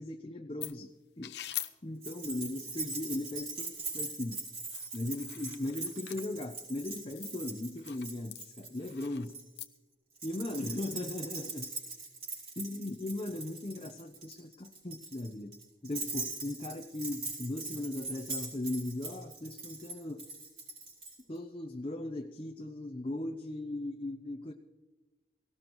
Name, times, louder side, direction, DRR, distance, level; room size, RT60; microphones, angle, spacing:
voice 1, 0.0-1.4 1.8-4.4 4.9-9.3 10.2-11.7 12.6-20.3 21.3-24.5, left 2 dB, 30° left, 4 dB, 0.6 m, -38 dB
sound 1, 0.6-0.7 1.2-1.7 4.6-6.3 6.8-7.3 7.7-8.0 8.3-9.7, left 14 dB, 70° left, 0.6 m, -43 dB
Keys jangling, 2.0-9.4 10.2-21.1, right 3 dB, 35° right, 4.5 m, -42 dB
18.0 x 16.0 x 3.0 m, 1.1 s
head